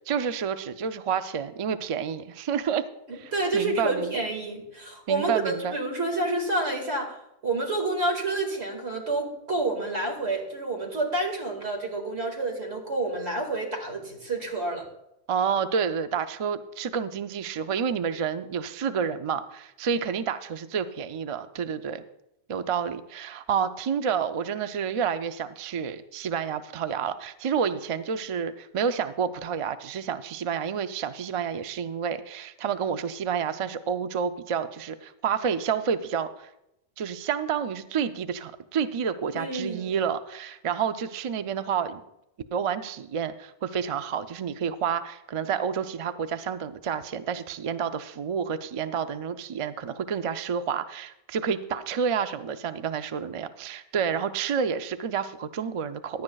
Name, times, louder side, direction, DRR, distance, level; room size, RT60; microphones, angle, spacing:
voice 1, 0.1-2.9 3.1-4.2 5.1-5.7 15.3-22.0 22.5-36.5 37.0-42.0 42.5-56.2, right 7 dB, 50° right, 10 dB, 0.4 m, -29 dB
voice 2, 3.1-7.1 7.4-14.9 39.3-39.9, right 2 dB, 80° right, 2 dB, 2.2 m, -29 dB
16.0 x 11.0 x 2.3 m, 0.85 s
omnidirectional pair, 1.1 m